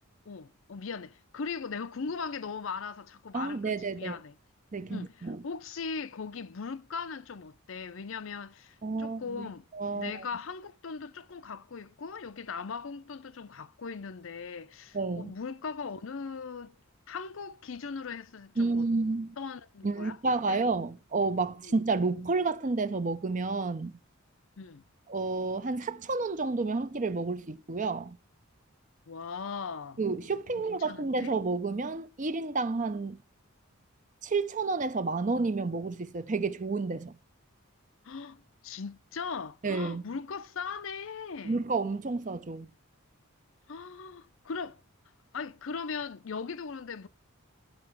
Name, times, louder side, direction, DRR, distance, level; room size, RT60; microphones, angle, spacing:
voice 1, 0.3-4.3 4.9-9.7 9.9-16.7 17.1-18.9 19.4-20.6 21.6-21.8 24.6-24.8 29.1-30.0 30.5-31.3 38.0-41.6 43.7-44.8 45.3-47.1, left 5 dB, 65° left, 0.6 m, -39 dB
voice 2, 3.3-4.2 4.7-5.4 8.8-10.2 14.9-15.3 18.6-19.4 19.8-24.0 25.1-28.2 30.0-33.2 34.2-37.2 39.6-40.1 41.4-42.7, right 3 dB, 35° right, 0.6 m, -30 dB
10.5 x 4.9 x 5.9 m
head